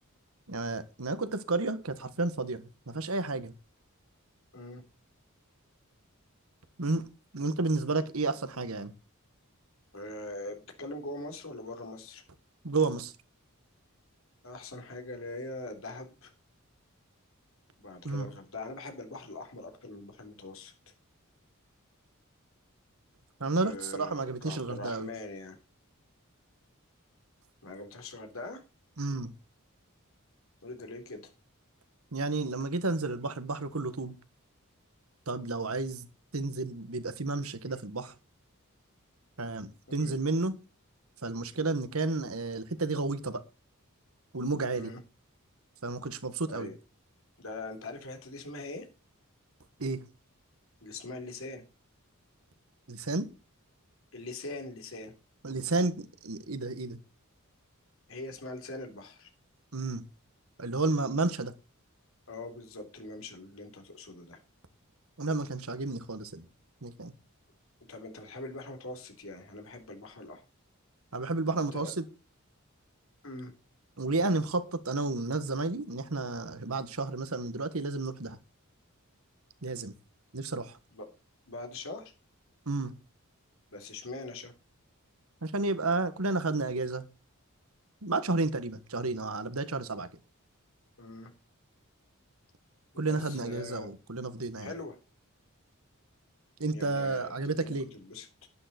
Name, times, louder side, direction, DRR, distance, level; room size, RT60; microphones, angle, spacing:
voice 1, 0.5-3.5 6.8-7.1 7.3-8.9 12.6-13.1 18.0-18.3 23.4-25.1 29.0-29.3 32.1-34.2 35.3-36.1 36.3-38.1 39.4-40.5 41.2-43.4 44.3-44.9 45.8-46.7 49.8-50.0 52.9-53.3 55.4-57.0 59.7-60.0 60.6-61.5 65.2-66.4 66.8-67.1 71.1-72.0 74.0-78.4 79.6-79.9 80.3-80.8 82.6-82.9 85.4-87.1 88.0-90.1 93.0-94.7 96.6-97.9, right 3 dB, 75° right, 1.6 m, -31 dB
voice 2, 9.9-12.2 14.4-16.3 17.8-20.7 23.6-25.6 27.6-28.6 30.6-31.3 40.0-40.1 44.7-45.0 46.5-46.7 47.4-48.9 50.8-51.6 54.1-55.1 58.1-59.3 62.3-64.4 67.9-70.4 71.7-71.9 73.2-73.5 80.9-81.1 81.5-82.1 83.7-84.5 91.0-91.3 92.9-93.9 94.6-95.0 96.7-97.3 97.6-98.5, left 2 dB, 70° left, 3.6 m, -42 dB
11.5 x 10.5 x 4.3 m
head